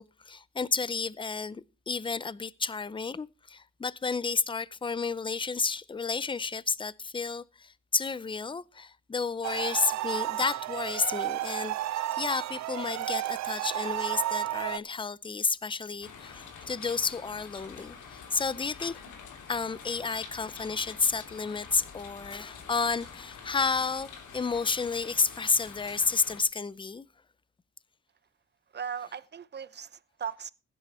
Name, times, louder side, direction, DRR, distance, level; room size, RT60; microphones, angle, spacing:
voice 1, 0.0-19.0 19.5-27.1, left 4 dB, 15° left, 0.6 m, -31 dB
sound 1, 9.4-14.8, right 14 dB, 65° right, 0.5 m, -32 dB
sound 2, 16.0-26.4, left 6 dB, 80° left, 3.3 m, -47 dB
voice 2, 28.7-30.5, right 7 dB, 35° right, 0.8 m, -38 dB
16.0 x 10.0 x 4.3 m
cardioid pair, 90°, 30 cm